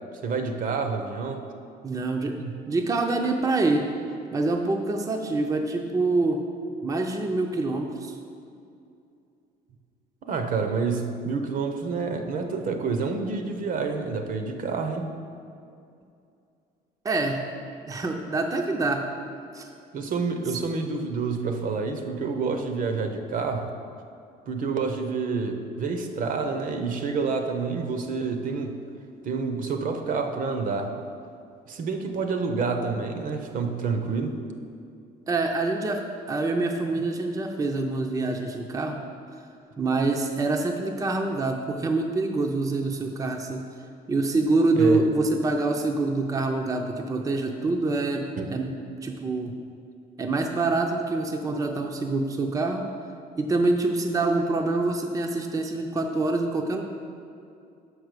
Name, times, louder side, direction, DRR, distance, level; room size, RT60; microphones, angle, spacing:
voice 1, 0.2-1.5 2.4-2.6 10.2-15.1 19.9-23.7 24.5-28.8 29.2-30.9 31.7-34.4 44.8-45.0 48.4-48.5, right 4 dB, 55° right, 6 dB, 0.7 m, -28 dB
voice 2, 1.8-2.4 2.7-3.9 4.3-6.4 6.8-8.1 17.0-17.4 17.9-19.1 19.5-19.7 35.3-39.0 39.8-43.7 44.1-49.6 50.2-52.9 53.4-56.8, right 2 dB, 20° right, 2 dB, 0.5 m, -26 dB
5.8 x 4.7 x 6.6 m, 2.5 s
cardioid pair, 110°, 17 cm